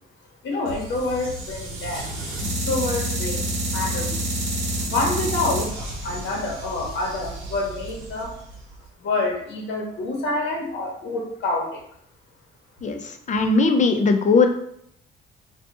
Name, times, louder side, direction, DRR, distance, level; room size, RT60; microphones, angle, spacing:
voice 1, 0.4-2.0 2.7-3.4 3.7-4.3 4.8-8.3 9.0-11.7, left 2 dB, 65° left, 0 dB, 1.0 m, -27 dB
sound 1, 0.7-8.8, right 1 dB, 85° right, 0.8 m, -29 dB
voice 2, 12.8-14.5, left 3 dB, 40° left, 5 dB, 0.5 m, -19 dB
4.0 x 2.2 x 2.9 m, 0.70 s
cardioid pair, 90°, 20 cm